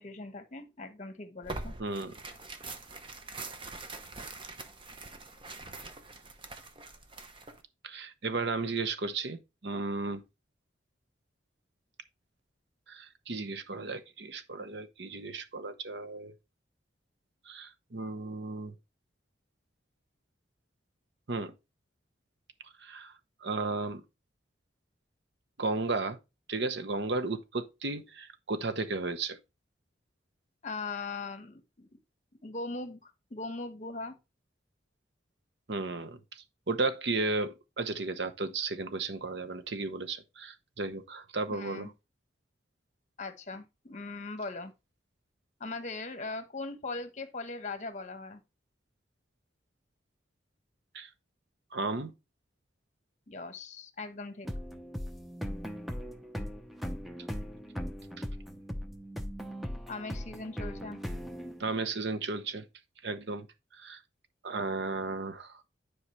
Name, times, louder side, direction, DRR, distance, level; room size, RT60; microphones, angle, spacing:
voice 1, 0.0-1.7 30.6-32.0 32.4-34.1 41.5-41.9 43.2-44.7 45.6-48.4 53.3-54.5 59.9-61.0, left 3 dB, 40° left, 1.1 m, -40 dB
Tearing, 1.4-7.6, right 3 dB, 25° right, 0.9 m, -44 dB
voice 2, 1.8-2.1 7.8-10.2 12.9-16.3 17.5-18.7 21.3-21.5 22.8-23.1 23.4-24.0 25.6-26.2 26.5-29.4 35.7-41.9 50.9-51.1 51.7-52.1 61.6-62.6 63.0-63.5 63.7-64.0 64.4-65.6, right 3 dB, 65° right, 0.9 m, -34 dB
sound 1, 54.4-62.1, equal, ahead, 0.7 m, -39 dB
10.0 x 4.8 x 3.2 m
head